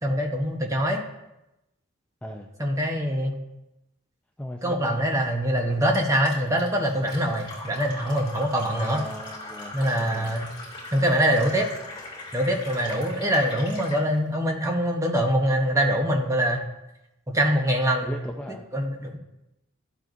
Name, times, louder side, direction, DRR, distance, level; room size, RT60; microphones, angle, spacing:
voice 1, 0.0-1.0 2.6-3.3 4.6-9.0 9.7-10.5 10.9-11.7 12.3-16.6 17.3-18.1 18.7-19.2, equal, 15° right, 2 dB, 1.0 m, -24 dB
voice 2, 4.4-5.0 8.7-10.3 18.0-18.7, equal, 5° left, 0 dB, 0.5 m, -38 dB
Fill (with liquid), 5.9-14.0, left 2 dB, 25° left, 2.9 m, -40 dB
12.5 x 7.5 x 2.7 m, 0.92 s
head